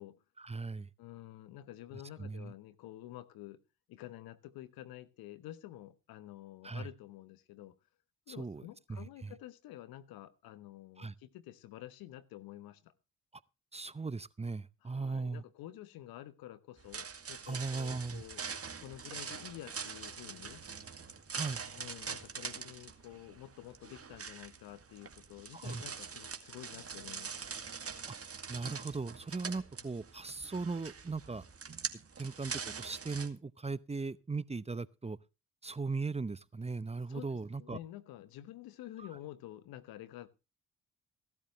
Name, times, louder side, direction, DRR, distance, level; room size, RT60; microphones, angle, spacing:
voice 1, 0.4-0.9 2.2-2.5 6.6-6.9 8.3-8.6 8.9-9.4 11.0-11.1 13.7-15.4 17.5-18.2 21.3-21.6 25.5-25.8 28.1-28.2 28.5-31.5 32.2-35.2 35.6-37.8 39.0-39.1, right 4 dB, 20° right, 0.7 m, -38 dB
voice 2, 1.0-3.6 3.9-7.7 8.3-12.9 14.8-18.4 18.8-20.6 21.8-27.4 37.1-37.3 37.6-40.3, left 14 dB, 75° left, 1.2 m, -49 dB
sound 1, 16.8-33.3, right 5 dB, 40° right, 2.1 m, -44 dB
17.0 x 12.0 x 3.2 m
hypercardioid pair, 45°, 36 cm